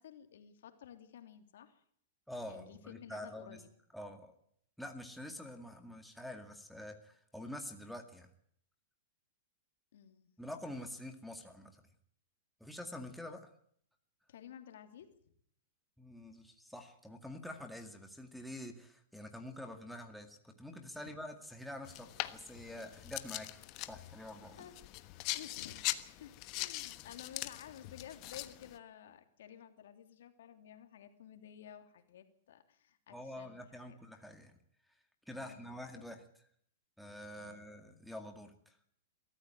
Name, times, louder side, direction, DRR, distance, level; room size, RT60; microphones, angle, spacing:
voice 1, 0.0-1.8 2.4-3.7 9.9-10.3 14.3-15.1 24.6-24.8 25.2-25.8 26.2-34.0 35.4-36.0 37.4-37.7, left 9 dB, 75° left, 7 dB, 2.9 m, -53 dB
voice 2, 2.3-3.6 3.9-4.3 4.8-8.3 10.4-11.8 12.6-13.5 16.0-24.7 33.1-34.5 35.3-36.2 37.0-38.7, left 1 dB, ahead, 3 dB, 2.1 m, -47 dB
sound 1, 21.8-28.8, left 18 dB, 35° left, 1.2 m, -42 dB
22.5 x 14.0 x 9.0 m, 0.66 s
hypercardioid pair, 150°, 0 cm